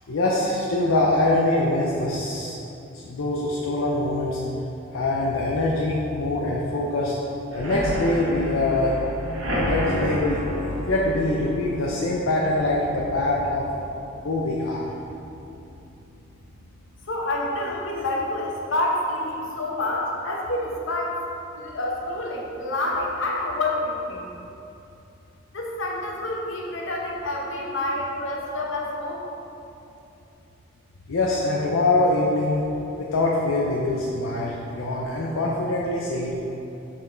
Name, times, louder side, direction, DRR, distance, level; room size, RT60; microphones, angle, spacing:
voice 1, 0.1-2.5 2.9-4.4 4.9-7.2 7.5-8.9 9.5-13.6 14.2-14.8 31.1-36.3, left 2 dB, 85° left, -3 dB, 0.6 m, -24 dB
sound 1, 7.5-15.1 15.5-15.9 16.1-16.2 16.6-16.7, equal, 85° right, 1.1 m, -30 dB
voice 2, 17.1-21.2 21.6-24.2 25.5-29.2, left 1 dB, 65° left, -1 dB, 0.9 m, -28 dB
5.6 x 5.0 x 3.8 m, 2.8 s
head